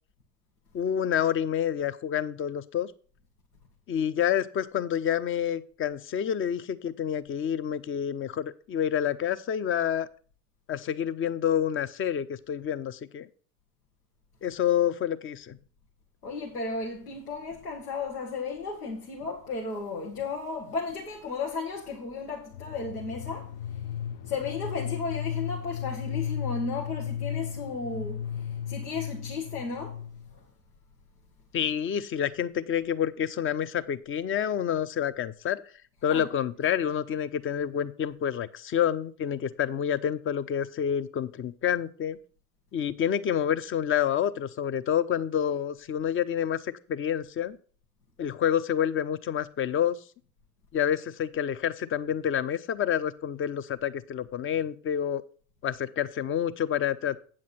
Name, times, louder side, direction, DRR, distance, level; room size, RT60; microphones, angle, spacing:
voice 1, 0.7-2.9 3.9-10.1 10.7-13.3 14.4-15.6 31.5-35.6 36.0-42.2 42.7-47.6 48.2-50.0 50.7-55.2 55.6-57.2, left 9 dB, 30° left, 0.6 m, -28 dB
voice 2, 16.2-23.5 24.3-30.0 30.3-30.4 36.0-36.3 36.6-36.7, left 4 dB, 90° left, 1.3 m, -34 dB
sound 1, 22.5-30.3, left 9 dB, 65° left, 0.8 m, -35 dB
8.7 x 7.5 x 4.1 m
hypercardioid pair, 70°, 45 cm